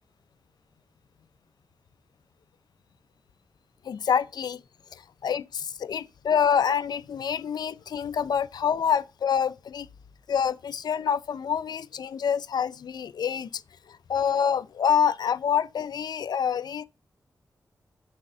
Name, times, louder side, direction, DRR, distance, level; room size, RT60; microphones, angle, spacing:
voice 1, 3.8-4.6 4.9-9.9 10.3-13.6 13.9-16.8, left 7 dB, 85° left, 0.5 m, -27 dB
8.2 x 3.6 x 6.6 m
wide cardioid pair, 90°, 7 cm